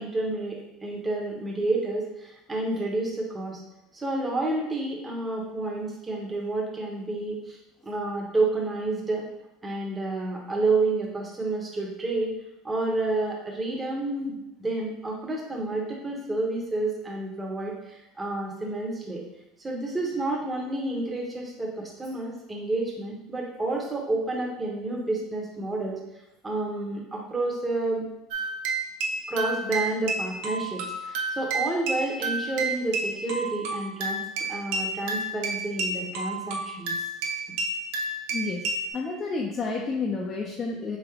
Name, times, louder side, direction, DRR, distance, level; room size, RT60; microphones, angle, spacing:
voice 1, 0.0-3.6 3.9-7.6 7.8-9.3 9.6-12.3 12.6-19.2 19.6-26.0 26.4-28.0 29.3-34.2 34.5-36.9, right 2 dB, 15° right, -2 dB, 0.9 m, -29 dB
sound 1, 28.3-38.9, right 3 dB, 75° right, 0.6 m, -30 dB
voice 2, 38.3-38.6 38.9-41.0, left 4 dB, 30° left, -2 dB, 0.5 m, -30 dB
3.7 x 3.5 x 3.5 m, 0.89 s
supercardioid pair, 125°, 0 cm